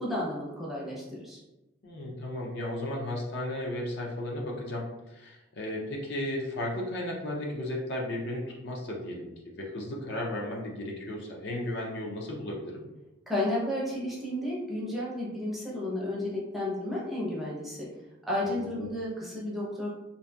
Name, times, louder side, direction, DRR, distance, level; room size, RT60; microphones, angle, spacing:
voice 1, 0.0-1.4 13.3-17.9 18.3-19.9, left 1 dB, ahead, -7 dB, 0.5 m, -32 dB
voice 2, 1.8-12.8 18.5-18.9, left 1 dB, 55° left, -1 dB, 0.5 m, -35 dB
2.6 x 2.5 x 2.2 m, 1.0 s
head